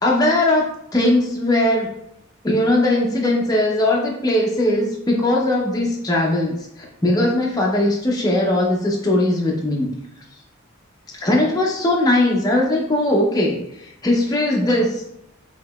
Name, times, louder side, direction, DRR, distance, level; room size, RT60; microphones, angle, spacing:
voice 1, 0.0-1.9 2.4-6.6 7.0-9.9 11.1-13.6 14.0-15.0, left 1 dB, 20° left, -2 dB, 0.5 m, -19 dB
4.7 x 2.8 x 2.2 m, 0.75 s
head